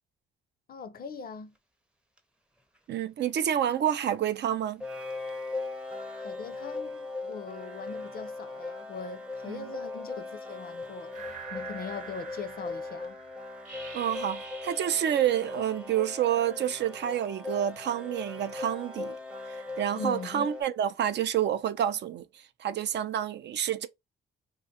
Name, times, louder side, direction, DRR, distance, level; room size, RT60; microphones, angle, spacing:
voice 1, 0.7-1.5 6.1-13.2 20.0-20.5, left 5 dB, 45° left, 0.5 m, -41 dB
sound 1, 2.2-2.3 4.8-20.6, left 3 dB, 5° right, 0.5 m, -39 dB
voice 2, 2.9-4.8 9.5-9.6 13.9-19.1 19.5-23.9, right 10 dB, 60° right, 0.4 m, -29 dB
sound 2, 11.1-16.5, right 5 dB, 40° right, 0.9 m, -46 dB
2.4 x 2.2 x 2.7 m
supercardioid pair, 60°, 20 cm